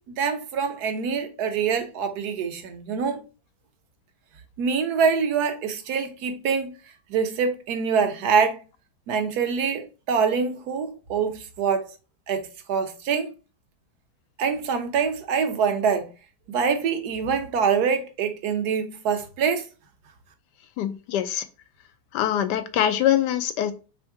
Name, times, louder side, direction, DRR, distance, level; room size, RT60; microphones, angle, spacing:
voice 1, 0.1-3.2 4.6-6.7 7.1-8.6 9.1-11.8 12.3-13.3 14.4-16.1 16.5-19.6, right 6 dB, 70° right, 1.3 m, -25 dB
voice 2, 20.8-21.4 22.1-23.7, left 11 dB, 80° left, 1.2 m, -23 dB
3.5 x 3.2 x 4.6 m
omnidirectional pair, 1.8 m